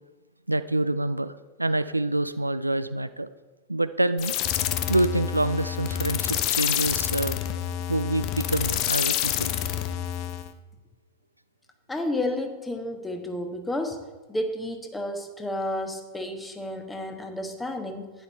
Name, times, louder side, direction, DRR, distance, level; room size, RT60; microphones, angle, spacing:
voice 1, 0.5-3.3 3.7-4.3 4.9-7.4 7.9-9.5, right 1 dB, 85° right, 13 dB, 0.4 m, -26 dB
sound 1, 4.2-10.5, left 11 dB, 40° left, 0.7 m, -28 dB
voice 2, 11.9-14.0 14.3-18.1, left 1 dB, 10° left, 5 dB, 1.3 m, -31 dB
11.5 x 9.9 x 4.2 m, 1.2 s
figure-of-eight pair, 90°, 0 cm